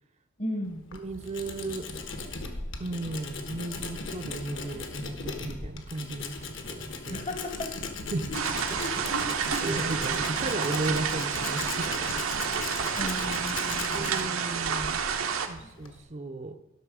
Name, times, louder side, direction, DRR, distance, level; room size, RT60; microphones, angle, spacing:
voice 1, 0.4-0.9 7.1-7.7 8.3-8.4 8.8-9.3 9.6-9.9 13.0-14.4 15.6-15.7, left 1 dB, 35° left, 4 dB, 0.9 m, -36 dB
Tools, 0.6-16.0, left 3 dB, 65° left, 1.2 m, -38 dB
voice 2, 0.9-1.9 2.8-7.2 8.1-8.3 8.7-8.8 9.5-12.1 12.6-13.1 13.5-15.0 15.5-16.5, right 2 dB, 35° right, 7 dB, 0.5 m, -35 dB
sound 1, 8.3-15.5, right 6 dB, 90° right, 0.9 m, -30 dB
12.0 x 6.0 x 4.8 m, 1.0 s
head